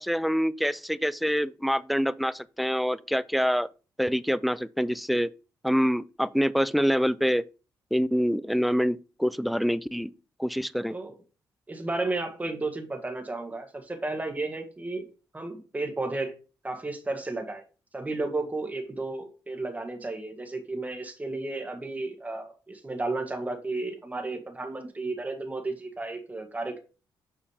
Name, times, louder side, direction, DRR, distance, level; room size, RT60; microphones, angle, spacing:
voice 1, 0.0-3.7 4.0-5.3 5.6-7.4 7.9-10.1 10.4-10.9, equal, ahead, 0.4 m, -26 dB
voice 2, 11.7-15.1 15.3-16.4 16.6-17.6 17.9-26.8, right 2 dB, 20° right, 1.6 m, -33 dB
7.1 x 4.8 x 3.4 m
cardioid pair, 85°, 8 cm